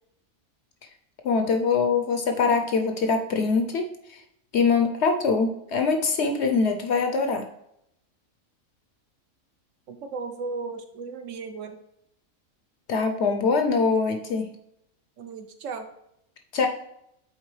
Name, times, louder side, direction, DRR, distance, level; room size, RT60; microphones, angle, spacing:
voice 1, 1.2-3.9 4.5-7.4 12.9-14.5 16.5-16.7, left 4 dB, 65° left, 5 dB, 0.8 m, -23 dB
voice 2, 9.9-11.8 15.2-15.9, right 4 dB, 70° right, 7 dB, 0.9 m, -35 dB
8.1 x 4.0 x 3.1 m, 0.78 s
omnidirectional pair, 1.4 m